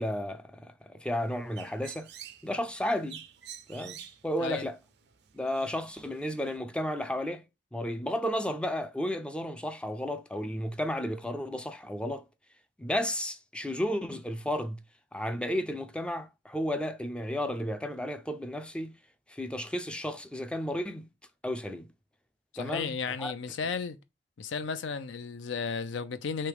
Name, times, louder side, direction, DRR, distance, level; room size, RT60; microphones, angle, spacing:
voice 1, 0.0-2.1 2.4-3.2 3.7-4.8 5.3-7.4 7.7-12.2 12.8-14.8 15.1-18.9 19.3-21.1 21.4-21.9 22.6-22.9 23.2-23.3, equal, 5° left, 0.3 m, -33 dB
Bird, 1.1-6.6, right 9 dB, 65° right, 0.5 m, -49 dB
voice 2, 22.5-24.0 24.4-26.5, left 5 dB, 80° left, 0.5 m, -34 dB
3.3 x 3.0 x 4.7 m
head